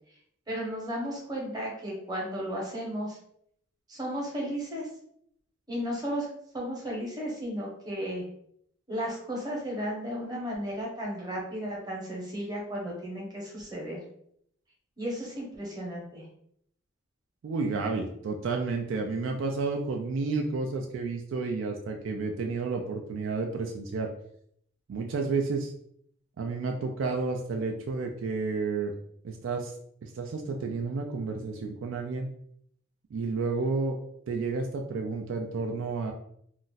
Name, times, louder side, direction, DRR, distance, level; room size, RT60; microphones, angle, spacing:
voice 1, 0.5-3.2 3.9-4.9 5.7-6.3 6.5-8.2 8.9-14.0 15.0-16.2, equal, 20° right, -3 dB, 0.8 m, -34 dB
voice 2, 17.4-24.1 24.9-25.7 26.4-28.9 29.2-29.7 30.0-32.3 33.1-34.0 34.3-36.1, right 4 dB, 65° right, 2 dB, 0.3 m, -31 dB
2.4 x 2.0 x 3.9 m, 0.68 s
head